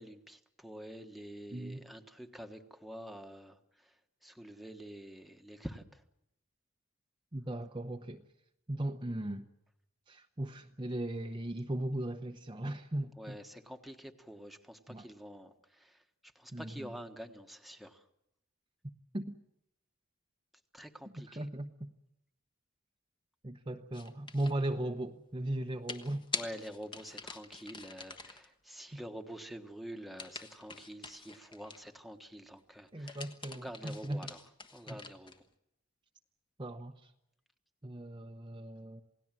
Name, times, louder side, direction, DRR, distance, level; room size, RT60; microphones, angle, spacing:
voice 1, 0.0-6.0 13.2-18.1 20.7-21.5 26.3-34.4 34.7-35.4, equal, ahead, 5 dB, 1.4 m, -47 dB
voice 2, 1.5-1.8 7.3-8.2 8.7-9.5 10.1-13.4 14.9-15.1 16.5-16.9 19.1-19.4 21.1-21.9 23.4-26.3 28.9-29.0 32.9-34.3 34.9-35.0 36.6-37.1 37.8-39.0, right 1 dB, 25° right, 4 dB, 0.9 m, -38 dB
sound 1, 23.9-24.6 25.9-28.5 30.2-32.0 32.9-35.4, left 4 dB, 25° left, 1.4 m, -44 dB
28.0 x 18.0 x 7.5 m, 0.81 s
head